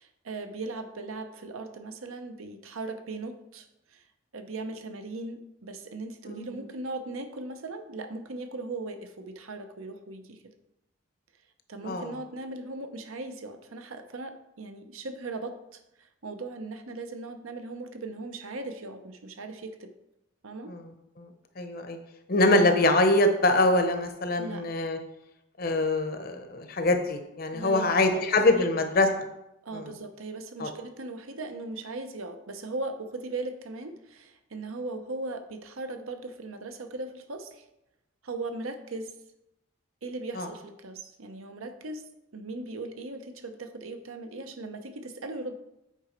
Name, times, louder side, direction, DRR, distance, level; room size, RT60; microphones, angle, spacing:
voice 1, 0.0-4.0 4.3-10.4 11.7-19.9 20.4-20.7 24.4-24.7 27.5-28.3 28.6-28.7 29.6-37.7 38.2-39.1 40.0-42.0 42.3-45.5, right 2 dB, 85° right, 7 dB, 0.8 m, -38 dB
voice 2, 6.3-6.6 11.8-12.1 20.6-20.9 21.2-22.0 22.3-25.0 25.6-29.1 29.7-29.9 30.6-30.7 40.4-40.5, left 2 dB, 45° left, 7 dB, 0.8 m, -24 dB
8.3 x 4.9 x 4.4 m, 0.87 s
head